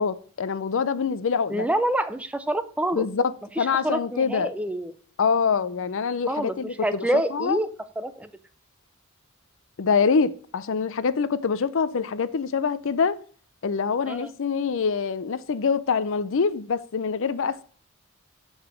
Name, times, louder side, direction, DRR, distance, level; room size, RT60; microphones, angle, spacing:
voice 1, 0.0-1.7 2.9-4.5 5.2-7.6 9.8-13.2 13.6-17.6, left 5 dB, 65° left, 0.5 m, -25 dB
voice 2, 1.5-3.1 3.6-4.9 6.3-6.5 6.8-7.7 8.0-8.3 14.1-14.3, right 1 dB, 5° right, 0.5 m, -27 dB
6.8 x 5.5 x 6.8 m
head